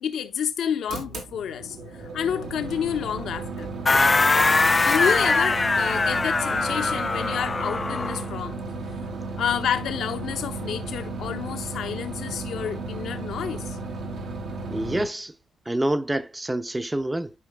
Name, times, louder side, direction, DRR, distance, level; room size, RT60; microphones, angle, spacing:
voice 1, 0.0-3.7 4.7-8.6 9.4-13.8, left 8 dB, 80° left, 0.9 m, -29 dB
sound 1, 0.9-15.1, right 3 dB, 80° right, 3.0 m, -34 dB
sound 2, 3.9-8.3, left 3 dB, 30° left, 0.3 m, -22 dB
voice 2, 14.7-15.3 15.7-17.3, right 1 dB, 15° right, 0.7 m, -27 dB
12.0 x 5.0 x 2.2 m
cardioid pair, 85°, 0 cm